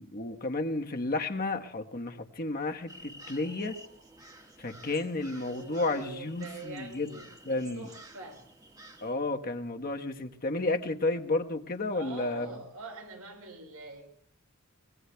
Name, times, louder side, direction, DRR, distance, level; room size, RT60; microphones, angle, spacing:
voice 1, 0.0-3.8 4.6-7.2 7.4-7.9 9.0-12.5, left 2 dB, 40° left, 5 dB, 1.2 m, -32 dB
sound 1, 2.9-9.1, right 1 dB, 15° right, 1.5 m, -51 dB
voice 2, 5.4-7.3 7.7-8.4 11.9-14.0, right 2 dB, 90° right, 3 dB, 5.6 m, -44 dB
24.5 x 20.5 x 2.3 m, 0.63 s
head